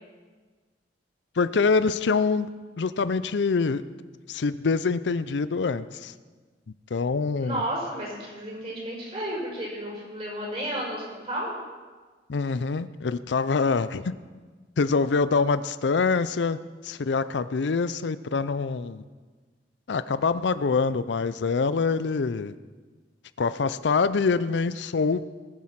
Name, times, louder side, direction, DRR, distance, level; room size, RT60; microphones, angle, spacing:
voice 1, 1.4-2.5 2.8-3.8 4.3-6.1 6.9-7.6 12.3-14.1 14.8-19.0 19.9-22.5 23.4-25.2, left 4 dB, 85° left, 14 dB, 0.5 m, -25 dB
voice 2, 7.4-11.5, right 1 dB, 35° right, -5 dB, 5.6 m, -32 dB
19.0 x 7.7 x 5.8 m, 1.4 s
head